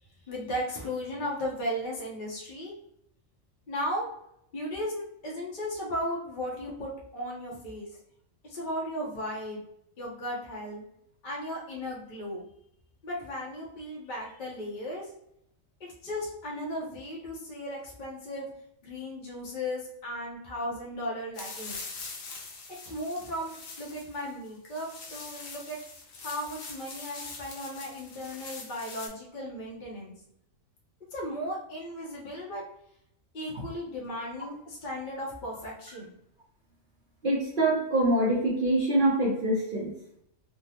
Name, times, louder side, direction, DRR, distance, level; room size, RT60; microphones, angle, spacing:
voice 1, 0.3-2.7 3.7-4.1 4.5-7.9 8.4-9.6 10.0-10.8 11.2-12.4 13.0-15.1 15.8-18.5 18.8-21.8 22.8-23.5 23.8-25.8 26.2-30.1 31.1-32.6 33.3-36.1, equal, 45° left, -4 dB, 0.7 m, -36 dB
sound 1, 21.3-29.1, left 4 dB, 75° left, 1.1 m, -43 dB
voice 2, 37.2-39.9, right 1 dB, 50° right, -5 dB, 0.8 m, -25 dB
3.5 x 2.1 x 2.7 m, 0.75 s
omnidirectional pair, 1.3 m